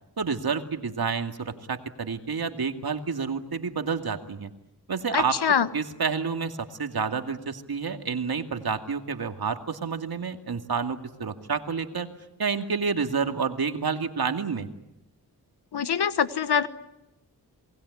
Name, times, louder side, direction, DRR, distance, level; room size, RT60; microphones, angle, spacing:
voice 1, 0.2-4.5 4.9-5.4 5.7-12.1 12.4-14.7, right 5 dB, 70° right, 6 dB, 2.4 m, -29 dB
voice 2, 5.1-5.7 15.7-16.7, left 7 dB, 85° left, 12 dB, 1.4 m, -24 dB
28.0 x 20.0 x 9.8 m, 0.94 s
cardioid pair, 40°, 39 cm